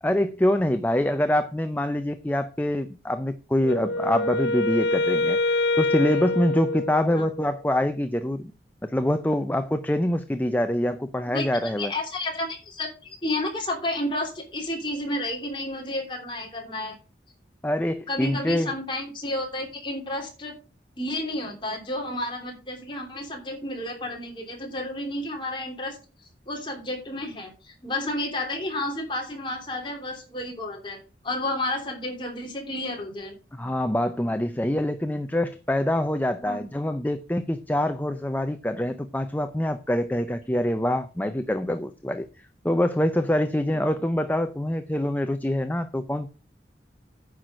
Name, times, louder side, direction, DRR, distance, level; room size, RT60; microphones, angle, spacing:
voice 1, 0.0-8.4 8.8-11.9 17.6-18.7 33.5-42.3 42.6-46.3, left 1 dB, 10° left, 0.5 m, -25 dB
Wind instrument woodwind instrument, 3.6-7.5, left 2 dB, 70° left, 0.5 m, -25 dB
voice 2, 11.8-17.0 18.1-20.5 21.0-26.0 26.5-33.3 36.4-36.6, left 1 dB, 25° left, 3.0 m, -31 dB
9.5 x 6.0 x 6.3 m
head